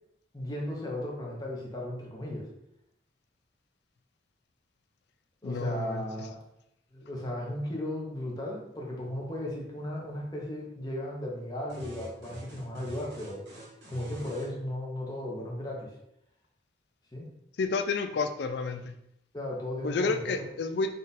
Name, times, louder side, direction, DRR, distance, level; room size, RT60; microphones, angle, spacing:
voice 1, 0.3-2.5 5.4-6.4 6.9-13.6 13.9-16.0 17.1-17.3 19.3-20.4, left 1 dB, 20° left, -2 dB, 0.8 m, -36 dB
voice 2, 5.4-6.0 17.6-18.9 19.8-20.9, left 4 dB, 65° left, 8 dB, 0.4 m, -30 dB
sound 1, 11.7-14.5, equal, 70° right, 1.1 m, -46 dB
3.8 x 2.5 x 4.1 m, 0.81 s
head